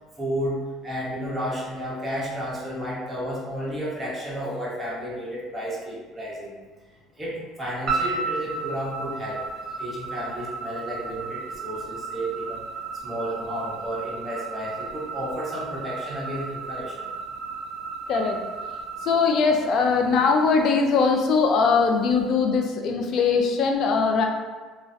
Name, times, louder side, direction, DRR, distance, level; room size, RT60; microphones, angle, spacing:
voice 1, 0.2-6.5 7.2-9.5 9.8-12.6 13.0-17.1, equal, 20° right, -6 dB, 0.9 m, -32 dB
sound 1, 7.9-20.2, right 4 dB, 50° right, 0.9 m, -34 dB
voice 2, 18.1-18.4 19.0-24.2, left 5 dB, 60° left, 3 dB, 0.3 m, -21 dB
2.3 x 2.1 x 2.5 m, 1.4 s
supercardioid pair, 80°, 0 cm